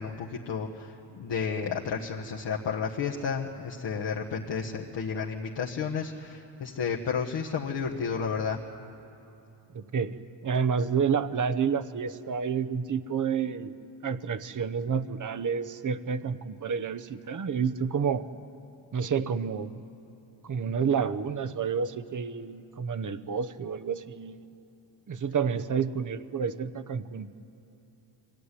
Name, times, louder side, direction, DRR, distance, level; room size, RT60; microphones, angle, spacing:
voice 1, 0.0-8.6, left 6 dB, 65° left, -2 dB, 1.5 m, -32 dB
voice 2, 9.7-10.2 10.4-13.8 14.0-18.3 18.9-19.8 20.5-24.4 25.1-27.3, right 6 dB, 40° right, 13 dB, 0.9 m, -29 dB
24.0 x 15.5 x 9.9 m, 3.0 s
cardioid pair, 100°, 46 cm